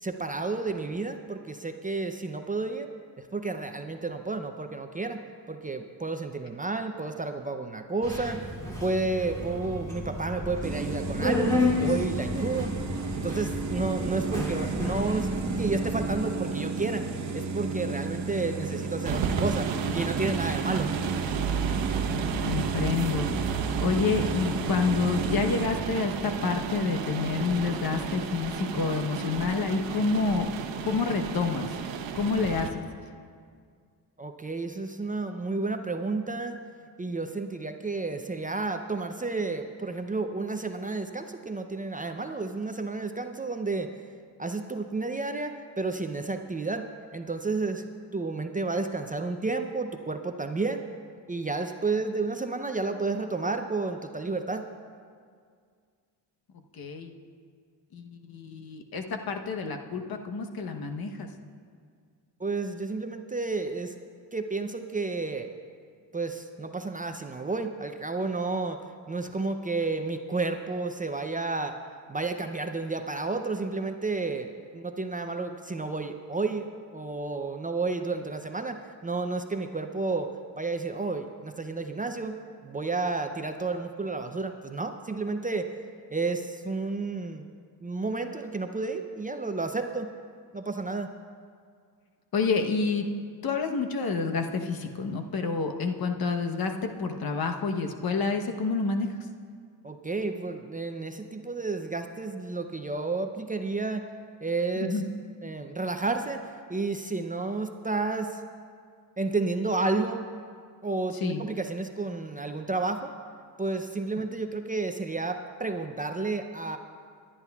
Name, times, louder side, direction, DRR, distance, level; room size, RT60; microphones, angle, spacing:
voice 1, 0.0-2.9 3.2-8.5 8.8-12.7 13.1-15.3 15.6-17.0 17.3-19.7 19.9-20.9 34.2-36.6 37.0-43.9 44.4-47.8 48.1-50.8 51.3-54.7 62.4-63.9 64.3-65.5 66.1-68.8 69.1-71.7 72.1-80.3 80.6-85.7 86.1-87.5 87.8-90.1 90.5-91.1 99.8-104.0 104.4-105.0 105.4-106.4 106.7-108.4 109.2-110.2 110.8-113.1 113.6-116.8, right 3 dB, 20° right, 6 dB, 0.5 m, -31 dB
Subway metro underground, 8.0-16.1, left 2 dB, 10° left, 2.8 m, -32 dB
sound 1, 10.6-25.7, right 4 dB, 40° right, 1.0 m, -33 dB
sound 2, 19.1-32.7, right 6 dB, 80° right, 0.9 m, -32 dB
voice 2, 22.4-23.3 23.8-30.5 30.8-31.7 32.1-32.8 56.7-57.1 57.9-61.3 92.3-93.1 93.4-99.1 104.8-105.0 111.2-111.4, left 4 dB, 55° left, 5 dB, 1.0 m, -28 dB
29.0 x 10.0 x 2.3 m, 2.1 s
cardioid pair, 75°, 44 cm